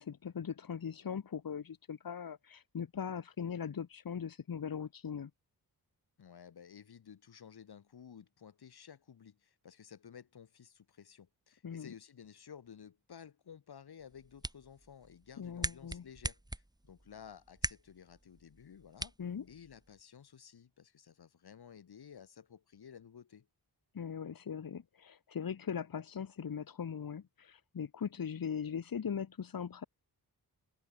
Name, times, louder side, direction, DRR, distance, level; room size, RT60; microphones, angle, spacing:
voice 1, 0.0-5.3 11.6-11.9 15.4-16.0 19.2-19.5 23.9-29.9, left 7 dB, 65° left, 2.2 m, -40 dB
voice 2, 6.2-19.1 19.5-23.5, left 7 dB, 90° left, 6.1 m, -54 dB
sound 1, 14.0-20.0, right 1 dB, 10° right, 3.4 m, -43 dB
wide cardioid pair, 100°, 37 cm